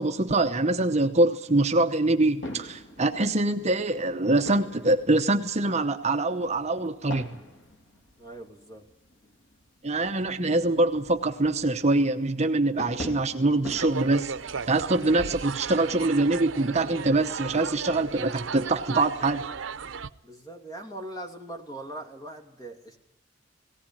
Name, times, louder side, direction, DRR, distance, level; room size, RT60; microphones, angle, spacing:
voice 1, 0.0-7.4 9.8-14.3 14.7-19.4, right 2 dB, 35° right, 7 dB, 0.9 m, -24 dB
sound 1, 2.1-15.5, left 1 dB, 70° left, 2.4 m, -45 dB
voice 2, 8.2-8.9 20.2-23.0, right 1 dB, 20° left, 4 dB, 2.7 m, -41 dB
sound 2, 13.7-20.1, right 6 dB, 80° right, 0.7 m, -36 dB
18.0 x 18.0 x 9.8 m, 0.91 s
head